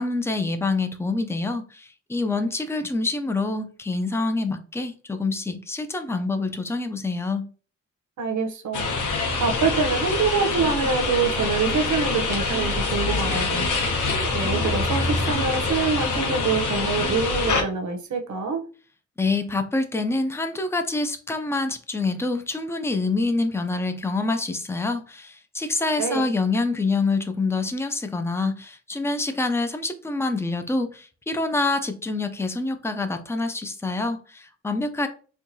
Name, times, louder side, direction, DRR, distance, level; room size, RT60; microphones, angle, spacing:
voice 1, 0.0-7.5 19.2-35.1, left 3 dB, 10° left, 0.4 m, -26 dB
voice 2, 8.2-8.9 9.4-13.7 14.3-18.6 26.0-26.3, right 5 dB, 70° right, 0.7 m, -25 dB
sound 1, 8.7-17.6, left 3 dB, 90° left, 0.9 m, -25 dB
sound 2, 10.8-11.1 11.7-11.9 12.5-12.8 13.5-13.8 14.4-14.7 15.3-15.5 16.1-16.4 17.0-17.3, right 3 dB, 50° left, 0.9 m, -39 dB
4.4 x 2.3 x 2.6 m
wide cardioid pair, 120°, 30 cm